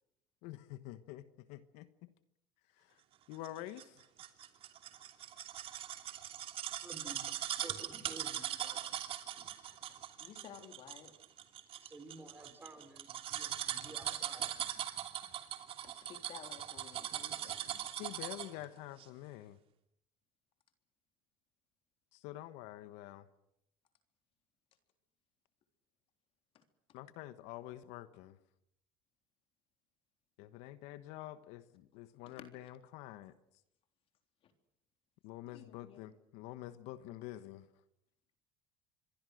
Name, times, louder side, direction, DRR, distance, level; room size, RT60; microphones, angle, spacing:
voice 1, 0.4-2.1 2.8-3.0 3.3-4.0 18.0-19.6 22.1-23.3 26.9-28.4 30.4-33.3 35.2-37.7, left 14 dB, 75° left, 13 dB, 1.2 m, -48 dB
sound 1, 3.4-18.6 19.0-19.1, right 11 dB, 55° right, 2.9 m, -41 dB
voice 2, 6.8-7.3 7.6-8.8 9.3-9.5 11.8-14.6, right 2 dB, 20° right, 8 dB, 5.3 m, -52 dB
voice 3, 10.2-11.1 15.2-15.3 15.8-18.0 26.5-27.0 32.3-32.5 34.4-34.5 35.5-36.2, left 8 dB, 55° left, 6 dB, 3.6 m, -55 dB
26.5 x 22.5 x 6.5 m, 0.79 s
supercardioid pair, 85°, 12 cm